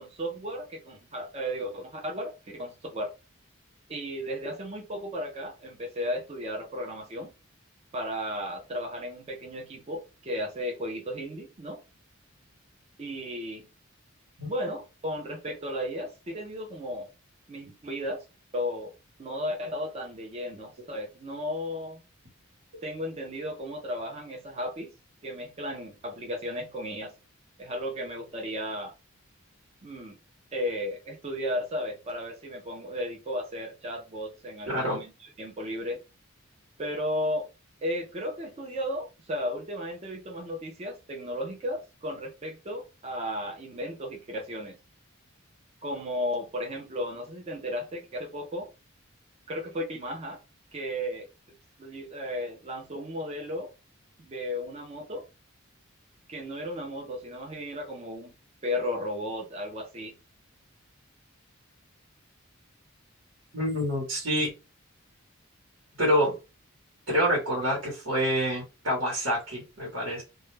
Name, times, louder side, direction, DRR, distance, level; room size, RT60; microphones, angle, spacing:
voice 1, 0.0-3.1 3.9-7.3 7.9-11.8 13.0-13.6 14.4-17.1 17.5-18.3 18.5-18.9 19.2-22.0 22.8-24.9 25.2-27.1 27.6-28.9 29.8-30.2 30.5-36.0 36.8-37.5 37.8-44.8 45.8-48.7 49.5-50.4 50.7-51.3 51.8-53.7 54.2-55.2 56.3-58.3 58.6-60.1, equal, 30° right, 0.5 m, -34 dB
voice 2, 34.7-35.0 63.5-64.5 66.0-66.3 67.1-70.2, equal, 75° right, 1.0 m, -27 dB
2.2 x 2.1 x 3.1 m
head